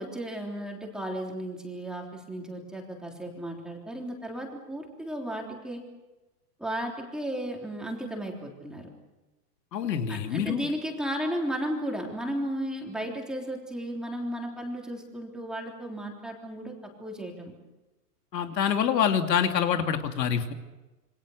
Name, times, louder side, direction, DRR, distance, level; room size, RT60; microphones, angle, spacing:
voice 1, 0.0-5.8 6.6-8.9 10.1-17.5, equal, ahead, 0 dB, 3.5 m, -34 dB
voice 2, 9.7-10.7 18.3-20.5, left 8 dB, 85° left, 5 dB, 3.0 m, -26 dB
28.0 x 25.0 x 6.5 m, 1.1 s
supercardioid pair, 160°, 49 cm